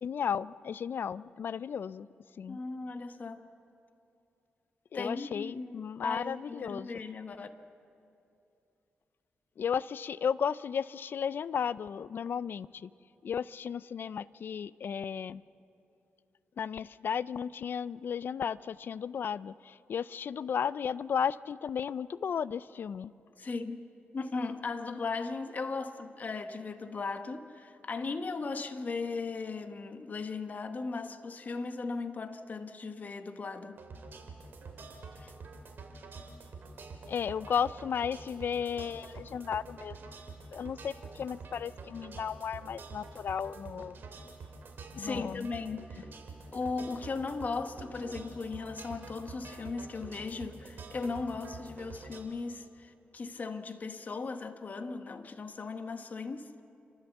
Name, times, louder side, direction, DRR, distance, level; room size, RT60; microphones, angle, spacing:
voice 1, 0.0-2.1 2.4-2.6 4.9-6.9 9.6-12.9 13.2-15.4 16.6-23.1 37.1-40.0 40.5-44.0 45.0-45.5, left 7 dB, 60° left, 19 dB, 0.4 m, -34 dB
voice 2, 2.5-3.5 4.9-7.5 23.4-33.8 35.2-35.3 45.0-46.1 46.5-56.6, left 4 dB, 45° left, 8 dB, 1.2 m, -37 dB
sound 1, 33.8-52.2, right 3 dB, 60° right, 2.9 m, -47 dB
28.0 x 13.5 x 7.2 m, 2.7 s
cardioid pair, 80°, 4 cm